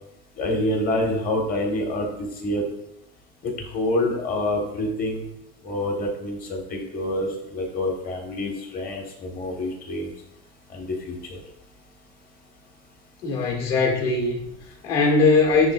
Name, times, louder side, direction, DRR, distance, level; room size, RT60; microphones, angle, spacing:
voice 1, 0.4-2.6 3.4-5.3 5.6-10.1 10.7-11.4, left 1 dB, 30° left, 1 dB, 1.3 m, -27 dB
voice 2, 13.2-15.7, left 3 dB, 55° left, -1 dB, 2.0 m, -21 dB
10.5 x 3.7 x 2.4 m, 0.86 s
cardioid pair, 165°, 30 cm